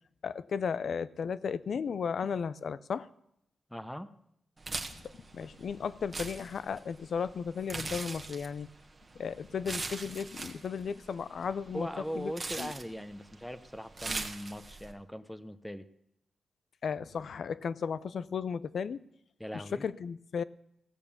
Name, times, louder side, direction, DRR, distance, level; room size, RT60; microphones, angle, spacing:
voice 1, 0.2-3.1 5.3-8.7 9.1-11.9 12.2-12.3 12.6-12.7 16.8-19.0 19.5-20.4, left 6 dB, 70° left, 17 dB, 0.5 m, -35 dB
voice 2, 3.7-4.1 11.7-15.9 19.4-19.9, equal, 5° left, 12 dB, 0.8 m, -40 dB
sound 1, 4.6-14.9, right 3 dB, 35° right, 1.4 m, -42 dB
16.0 x 6.7 x 7.1 m, 0.77 s
cardioid pair, 60°, 0 cm